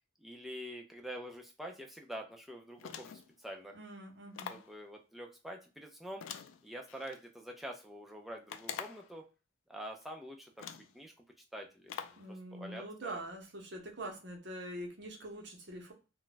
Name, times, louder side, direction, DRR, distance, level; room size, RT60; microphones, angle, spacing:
voice 1, 0.2-3.1 3.4-3.8 4.5-6.3 6.6-9.3 9.7-11.1 11.5-11.9 12.3-13.2, equal, ahead, 2 dB, 0.4 m, -46 dB
sound 1, 2.8-3.4 4.3-4.7 6.2-7.2 8.5-9.1 10.0-10.1 10.6-11.0 11.9-12.3, left 8 dB, 90° left, 0.3 m, -45 dB
voice 2, 3.7-4.6 12.2-15.9, right 1 dB, 60° right, 2 dB, 0.7 m, -44 dB
2.2 x 2.1 x 3.9 m, 0.31 s
head